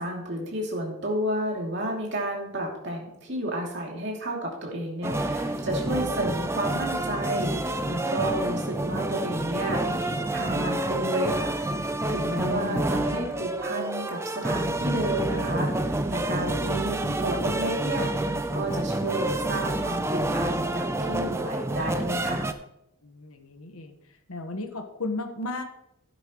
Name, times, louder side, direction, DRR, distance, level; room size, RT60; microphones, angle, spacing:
voice 1, 0.0-22.5, right 1 dB, 50° right, -1 dB, 2.7 m, -31 dB
sound 1, 5.0-22.5, right 1 dB, 10° right, 0.4 m, -28 dB
voice 2, 12.2-12.8 23.0-23.9 24.3-25.6, left 2 dB, 80° left, 6 dB, 1.3 m, -34 dB
12.0 x 9.8 x 3.0 m, 0.83 s
head